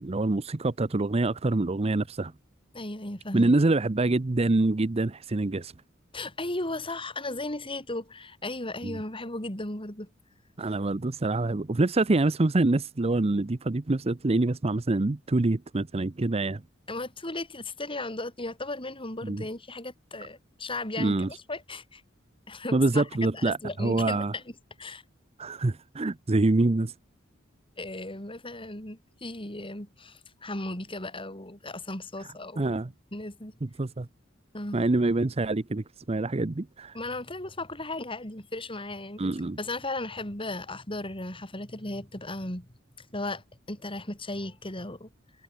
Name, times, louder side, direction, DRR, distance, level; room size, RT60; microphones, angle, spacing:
voice 1, 0.0-2.3 3.3-5.7 8.8-9.0 10.6-16.6 19.2-19.4 21.0-21.3 22.7-24.3 25.4-26.9 32.6-32.9 33.6-34.1 34.7-36.9 39.2-39.6, right 2 dB, 30° right, 0.7 m, -25 dB
voice 2, 2.7-3.5 6.1-10.1 16.9-22.0 22.5-24.4 24.8-25.0 27.8-32.8 33.1-33.5 34.5-34.8 36.9-39.2 39.6-42.7 43.0-45.1, left 2 dB, 25° left, 7.7 m, -36 dB
head